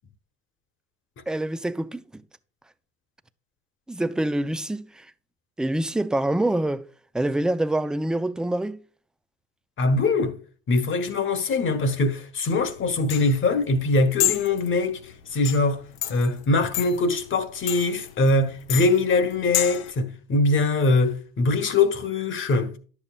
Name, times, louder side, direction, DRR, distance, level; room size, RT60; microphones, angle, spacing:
voice 1, 1.3-2.2 3.9-5.1 5.6-6.9 7.1-8.8, right 1 dB, ahead, 0.3 m, -26 dB
voice 2, 9.8-10.4 10.7-22.8, left 2 dB, 35° left, 1.2 m, -22 dB
sound 1, 12.5-19.9, left 13 dB, 85° left, 0.7 m, -31 dB
10.5 x 7.2 x 2.4 m
hypercardioid pair, 85°, 33 cm